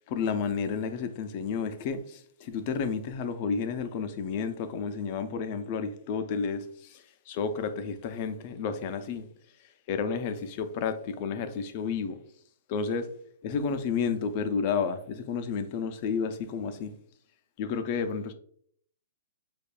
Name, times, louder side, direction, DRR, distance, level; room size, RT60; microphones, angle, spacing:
voice 1, 0.1-9.3 9.9-12.2 12.7-13.1 13.4-16.9 17.6-18.3, left 5 dB, 35° left, 0.3 m, -31 dB
5.0 x 2.3 x 2.2 m
hypercardioid pair, 165°, 0 cm